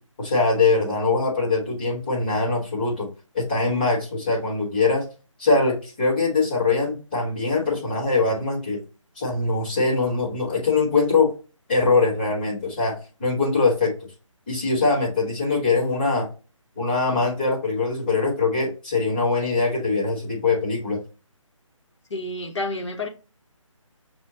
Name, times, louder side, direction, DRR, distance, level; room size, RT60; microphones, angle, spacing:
voice 1, 0.2-3.1 3.3-5.0 5.4-8.8 9.2-11.3 11.7-12.9 13.2-13.9 14.5-16.3 16.8-21.0, left 3 dB, 20° left, 1.3 m, -22 dB
voice 2, 22.1-23.1, left 2 dB, 60° left, 1.2 m, -29 dB
6.2 x 2.1 x 2.7 m
figure-of-eight pair, 175°, 17 cm